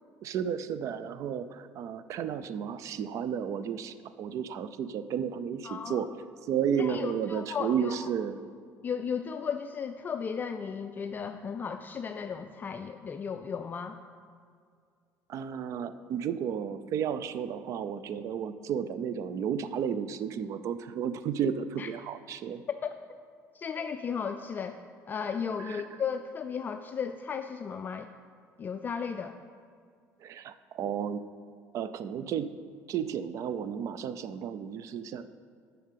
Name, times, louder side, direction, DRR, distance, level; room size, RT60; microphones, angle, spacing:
voice 1, 0.2-6.1 6.4-8.4 15.3-22.6 25.6-26.0 30.2-31.2 31.7-32.5 32.9-35.2, right 8 dB, 55° right, 12 dB, 0.5 m, -33 dB
voice 2, 5.6-6.0 6.8-8.1 8.8-14.0 21.8-21.9 22.7-22.9 23.5-24.8 25.1-28.1 28.6-29.4, left 6 dB, 30° left, 7 dB, 0.4 m, -35 dB
7.4 x 5.7 x 7.4 m, 2.2 s
cardioid pair, 105°, 6 cm